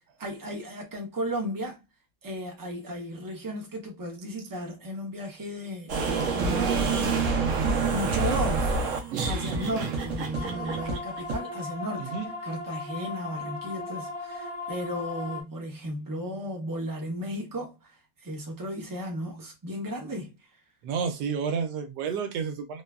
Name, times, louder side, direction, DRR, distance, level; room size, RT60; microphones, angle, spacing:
voice 1, 0.2-1.8 2.2-7.3 7.6-8.8 9.2-12.1 12.4-17.9 18.2-20.4, equal, 35° right, 0.3 m, -34 dB
sound 1, 5.9-11.4, right 4 dB, 60° right, 0.9 m, -27 dB
sound 2, 10.3-15.4, left 3 dB, 25° left, 0.6 m, -37 dB
voice 2, 20.8-22.8, right 6 dB, 90° right, 1.3 m, -30 dB
3.0 x 2.3 x 2.2 m
omnidirectional pair, 1.7 m